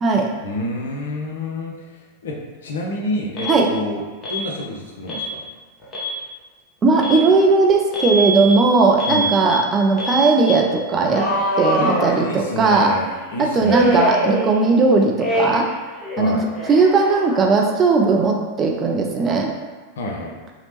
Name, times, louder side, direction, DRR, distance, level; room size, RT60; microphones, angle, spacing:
voice 1, 0.4-4.0 4.3-5.4 9.1-9.3 11.8-14.0 16.2-16.4 20.0-20.4, left 1 dB, 60° left, -1 dB, 0.5 m, -28 dB
Alarm, 3.4-3.6 4.2-4.5 5.1-5.3 5.8-6.2 7.0-7.2 7.9-8.5 9.0-9.5 10.0-10.5 11.1-12.7 13.6-14.8 15.2-15.7 16.0-17.7, right 1 dB, 25° left, 0.7 m, -24 dB
voice 2, 6.8-11.2 11.6-12.9 13.5-15.7 16.2-16.4 16.7-19.5, right 3 dB, 25° right, 1 dB, 0.4 m, -17 dB
2.8 x 2.0 x 2.9 m, 1.4 s
figure-of-eight pair, 90°, 0 cm